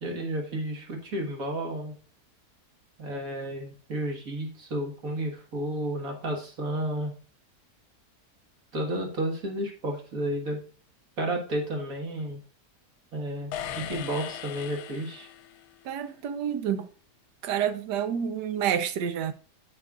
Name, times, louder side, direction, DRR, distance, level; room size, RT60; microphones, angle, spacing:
voice 1, 0.0-1.9 3.0-7.1 8.7-10.6 11.2-12.4 13.1-15.3, right 1 dB, 55° right, 2.0 m, -32 dB
sound 1, 13.5-15.8, left 9 dB, 80° left, 1.2 m, -38 dB
voice 2, 15.8-16.9 17.4-19.3, right 9 dB, 85° right, 1.3 m, -28 dB
10.0 x 6.5 x 2.4 m
omnidirectional pair, 1.8 m